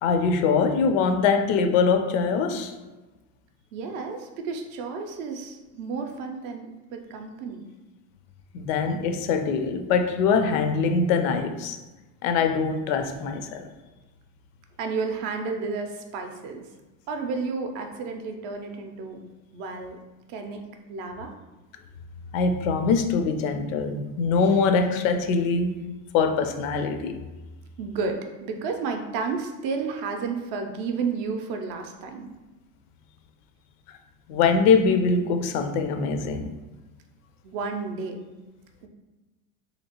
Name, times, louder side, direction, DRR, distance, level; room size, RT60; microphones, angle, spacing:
voice 1, 0.0-2.7 8.5-11.8 12.2-13.7 22.3-25.8 26.1-27.1 34.3-36.5, left 5 dB, 75° left, 0.5 m, -23 dB
voice 2, 3.7-7.7 14.8-16.6 17.1-20.0 20.3-20.6 20.9-21.3 27.8-32.3 37.4-38.2 38.8-38.9, right 4 dB, 50° right, 0.5 m, -32 dB
2.9 x 2.8 x 2.8 m
supercardioid pair, 135°, 40 cm